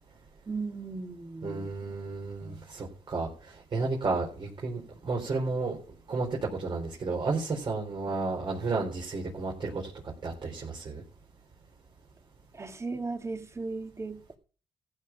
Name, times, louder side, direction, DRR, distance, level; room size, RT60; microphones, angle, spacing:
voice 1, 0.5-1.8 2.4-2.7 12.5-14.3, right 3 dB, 25° right, 1.9 m, -37 dB
voice 2, 1.4-5.8 6.1-9.9 10.2-11.0, right 3 dB, 45° right, 4.0 m, -32 dB
14.5 x 7.0 x 5.9 m
cardioid pair, 80°, 11 cm